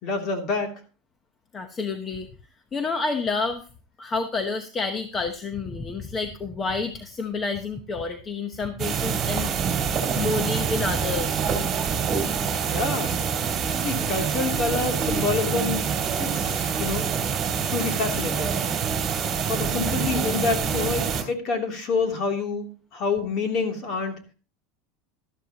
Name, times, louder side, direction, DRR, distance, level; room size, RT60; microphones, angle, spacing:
voice 1, 0.0-0.8 12.7-13.2 13.8-15.9 16.2-17.1 17.7-18.6 19.4-24.2, left 4 dB, 40° left, 3 dB, 3.0 m, -27 dB
voice 2, 1.5-2.3 2.7-3.7 4.0-9.5 10.1-11.6, left 4 dB, 20° left, 7 dB, 1.0 m, -29 dB
sound 1, 8.8-21.2, right 7 dB, 25° right, 3.1 m, -26 dB
13.0 x 12.5 x 2.9 m, 0.36 s
supercardioid pair, 150°, 0 cm